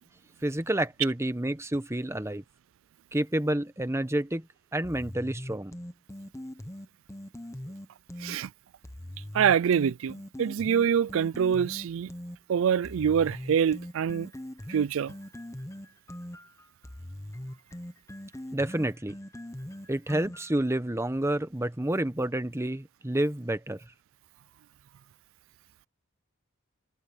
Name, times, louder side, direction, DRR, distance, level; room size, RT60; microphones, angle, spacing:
voice 1, 0.4-2.4 3.1-4.5 4.7-5.7 18.5-19.1 19.9-23.8, right 1 dB, 10° right, 1.0 m, -29 dB
sound 1, 4.8-8.4 8.8-12.4 12.8-20.6, left 1 dB, 15° left, 1.0 m, -41 dB
voice 2, 9.3-12.1 12.5-14.3 14.7-15.1, right 8 dB, 65° right, 0.3 m, -25 dB
head